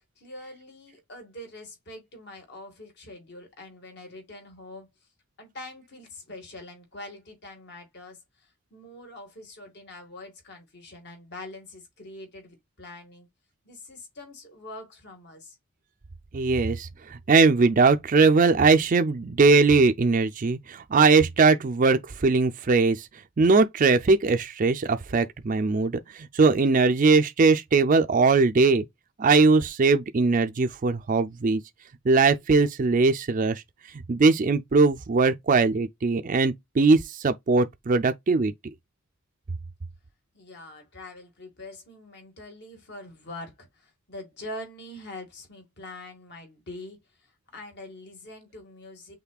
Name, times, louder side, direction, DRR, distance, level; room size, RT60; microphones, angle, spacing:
voice 1, 0.0-4.9 5.4-13.3 13.6-15.6 40.3-49.1, left 1 dB, 50° left, 1.8 m, -44 dB
voice 2, 16.3-23.1 23.4-28.8 29.2-31.6 32.0-33.6 34.1-38.5, right 4 dB, 35° right, 0.4 m, -20 dB
5.8 x 3.6 x 2.3 m
head